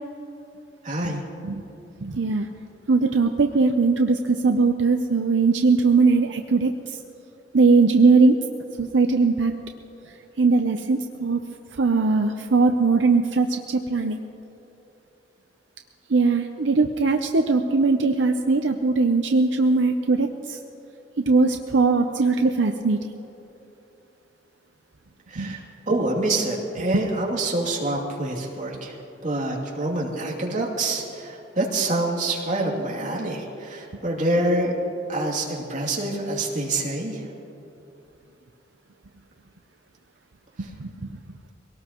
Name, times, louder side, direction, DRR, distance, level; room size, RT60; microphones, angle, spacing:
voice 1, 0.8-1.2 25.3-25.6 25.9-28.9 29.2-34.7 35.1-37.2 40.6-40.7, right 2 dB, 40° right, -3 dB, 2.7 m, -26 dB
voice 2, 2.0-2.5 2.9-6.7 7.5-8.3 8.8-9.5 10.4-11.4 11.8-14.2 16.1-20.3 21.3-23.0 25.4-25.5 40.8-40.9, right 4 dB, 75° right, 5 dB, 0.7 m, -20 dB
23.0 x 18.0 x 3.0 m, 3.0 s
head